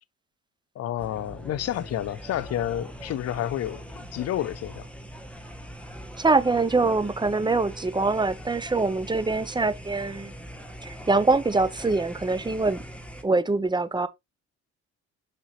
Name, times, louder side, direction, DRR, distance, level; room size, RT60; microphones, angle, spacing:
voice 1, 0.8-4.9, left 12 dB, 55° left, 0.6 m, -30 dB
sound 1, 1.0-13.2, equal, 5° left, 1.4 m, -42 dB
voice 2, 6.2-10.3 10.8-12.8 13.2-14.1, right 3 dB, 15° right, 0.8 m, -24 dB
6.2 x 5.1 x 3.1 m
cardioid pair, 90°, 30 cm